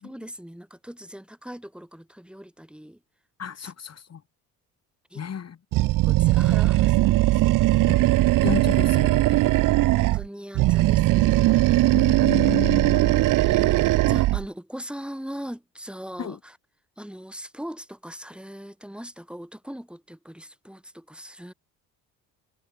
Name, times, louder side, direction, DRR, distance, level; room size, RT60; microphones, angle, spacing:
voice 1, 0.0-3.0 3.6-3.7 5.1-5.2 5.9-7.9 9.9-12.0 13.4-16.6 17.0-21.5, equal, 5° right, 7.6 m, -40 dB
voice 2, 3.4-4.2 5.1-5.6 7.9-8.0 8.4-9.4 11.8-13.3 16.2-16.4, left 7 dB, 45° left, 7.6 m, -32 dB
Animal, 5.7-10.2 10.5-14.5, right 17 dB, 65° right, 0.6 m, -19 dB
supercardioid pair, 85°, 35 cm